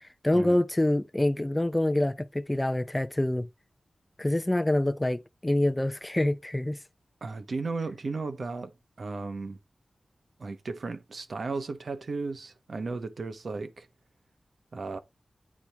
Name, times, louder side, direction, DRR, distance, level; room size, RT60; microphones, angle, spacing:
voice 1, 0.2-3.5 4.2-6.8, left 1 dB, 15° left, 0.5 m, -26 dB
voice 2, 7.2-9.6 10.4-13.9 14.7-15.0, right 3 dB, 60° right, 1.0 m, -35 dB
8.5 x 4.2 x 3.4 m
wide cardioid pair, 100°, 0 cm